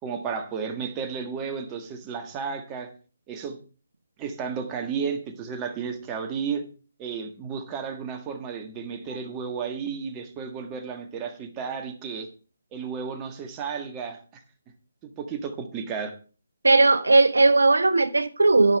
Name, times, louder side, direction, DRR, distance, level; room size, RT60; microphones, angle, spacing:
voice 1, 0.0-2.9 3.3-3.6 4.2-6.6 7.0-12.3 12.7-14.2 15.0-16.1, right 6 dB, 20° right, 1.6 m, -33 dB
voice 2, 16.6-18.8, right 3 dB, 80° right, 0.8 m, -18 dB
12.5 x 5.5 x 5.4 m
figure-of-eight pair, 150°, 0 cm